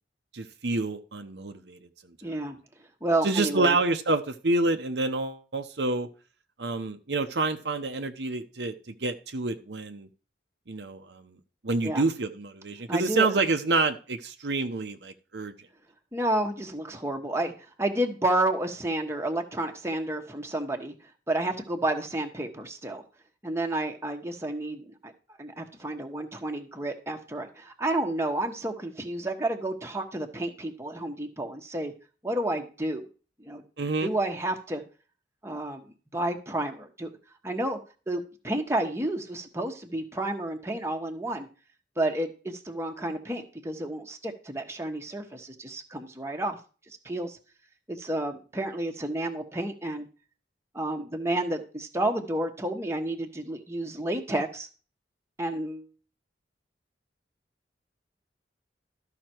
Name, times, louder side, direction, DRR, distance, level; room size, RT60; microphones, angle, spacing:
voice 1, 0.3-2.1 3.2-6.1 6.6-10.1 10.7-11.4 11.6-15.5 33.8-34.1, right 3 dB, 70° right, 6 dB, 0.9 m, -28 dB
voice 2, 2.2-2.6 3.0-3.8 11.8-12.1 12.9-13.3 16.1-17.5 17.8-20.9 21.3-23.0 23.4-25.1 25.4-31.9 32.2-33.1 33.4-33.6 34.0-34.8 35.4-37.1 37.4-37.8 38.1-41.5 42.0-46.6 47.0-47.4 47.9-50.1 50.7-54.7 55.4-55.9, right 1 dB, 15° right, 3 dB, 1.3 m, -30 dB
13.0 x 5.9 x 4.5 m, 0.35 s
head